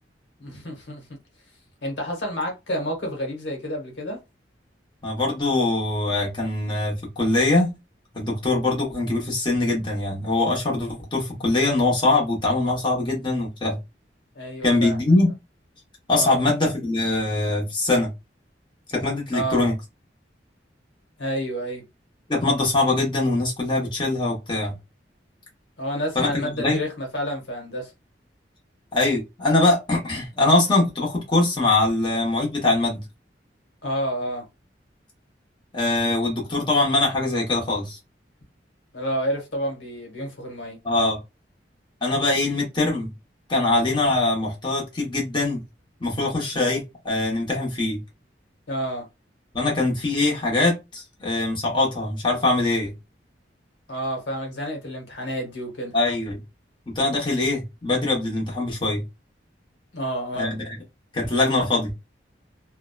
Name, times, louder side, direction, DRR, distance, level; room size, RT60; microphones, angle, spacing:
voice 1, 0.4-1.0 1.8-4.2 14.4-15.0 16.1-16.4 19.3-19.6 21.2-21.8 25.8-27.9 33.8-34.5 38.9-40.8 48.7-49.1 53.9-55.9 59.9-60.6, equal, 80° left, 1.0 m, -29 dB
voice 2, 5.0-7.7 8.1-13.8 14.6-15.3 16.1-18.1 18.9-19.7 22.3-24.7 26.1-26.8 28.9-33.0 35.7-38.0 40.8-41.2 42.0-43.1 43.5-45.6 46.0-48.0 49.5-52.9 55.9-56.4 56.9-59.0 60.3-60.6 61.1-61.9, left 2 dB, 25° left, 0.9 m, -22 dB
2.8 x 2.1 x 2.3 m
head